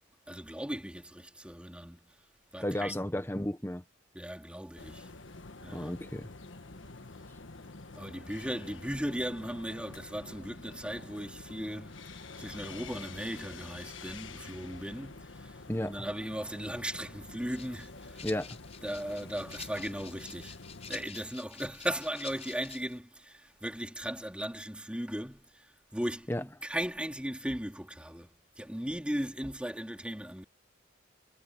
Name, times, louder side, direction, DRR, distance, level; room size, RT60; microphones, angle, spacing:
voice 1, 0.3-2.1 2.5-3.3 4.1-5.1 5.6-6.0 7.9-15.6 15.8-18.3 18.8-20.6 20.9-25.7 25.9-28.3 28.6-30.4, equal, 5° right, 2.8 m, -37 dB
voice 2, 2.6-3.8 5.7-6.3 15.7-16.1 18.2-18.6 26.3-26.4, left 1 dB, 15° left, 1.1 m, -33 dB
sound 1, 4.8-21.1, left 3 dB, 85° left, 1.5 m, -48 dB
Rattle (instrument), 17.5-23.0, left 7 dB, 35° left, 5.5 m, -49 dB
head